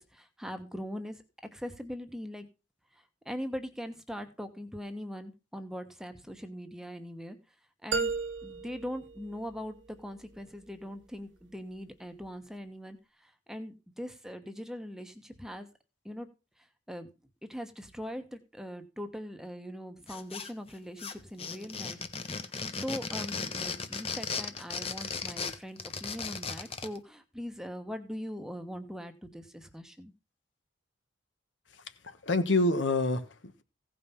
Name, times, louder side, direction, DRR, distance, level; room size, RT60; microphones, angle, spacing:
voice 1, 0.0-2.5 2.9-7.4 7.8-8.1 8.4-15.7 16.0-16.3 16.9-17.1 17.5-22.0 22.8-30.1, equal, 5° right, 1.0 m, -41 dB
sound 1, 7.9-10.0, right 4 dB, 70° right, 1.3 m, -34 dB
sound 2, 20.1-20.7 21.0-27.0, left 5 dB, 30° left, 1.0 m, -36 dB
voice 2, 31.7-33.6, left 2 dB, 75° left, 1.3 m, -28 dB
16.0 x 5.4 x 5.7 m
head